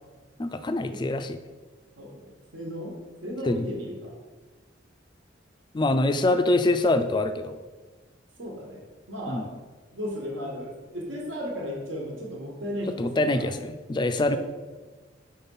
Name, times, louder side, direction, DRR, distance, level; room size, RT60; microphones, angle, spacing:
voice 1, 0.4-1.4 3.5-3.7 5.7-7.6 9.3-9.5 13.0-14.4, left 2 dB, 25° left, 10 dB, 0.3 m, -24 dB
voice 2, 2.0-4.1 8.4-9.5 9.9-13.5 14.3-14.4, equal, 80° right, -1 dB, 1.4 m, -35 dB
5.6 x 4.3 x 5.4 m, 1.3 s
head